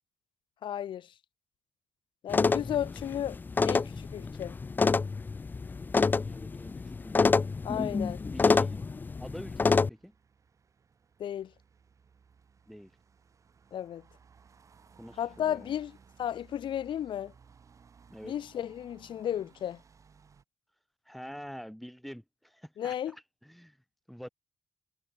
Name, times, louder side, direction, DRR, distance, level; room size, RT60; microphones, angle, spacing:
voice 1, 0.6-1.1 2.2-3.4 3.6-4.6 7.6-8.2 11.2-11.5 13.7-14.0 15.2-17.3 18.2-19.8 22.8-23.1, left 10 dB, 60° left, 1.0 m, -34 dB
sound 1, 2.3-9.9, left 4 dB, 20° left, 0.5 m, -28 dB
sound 2, 3.2-20.4, right 6 dB, 35° right, 4.5 m, -61 dB
voice 2, 6.1-7.4 8.3-8.8 9.2-10.1 12.7-12.9 15.0-15.7 18.1-18.3 21.0-23.8 24.1-24.3, equal, ahead, 1.4 m, -46 dB
wide cardioid pair, 165°, 9 cm